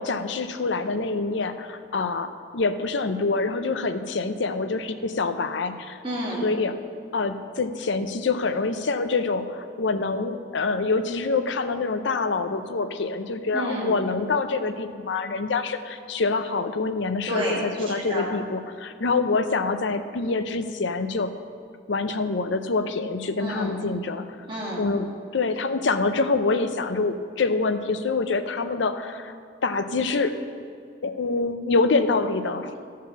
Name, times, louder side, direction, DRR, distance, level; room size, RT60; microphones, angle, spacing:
voice 1, 0.0-6.0 6.4-6.8 7.1-21.3 21.9-24.3 24.8-29.4 29.6-30.4 31.0-32.7, left 3 dB, 75° left, 9 dB, 0.6 m, -26 dB
voice 2, 6.0-6.4 13.5-14.0 17.3-18.3 23.4-23.7 24.5-24.8, right 1 dB, 25° right, -5 dB, 2.2 m, -30 dB
12.0 x 4.7 x 6.9 m, 2.2 s
head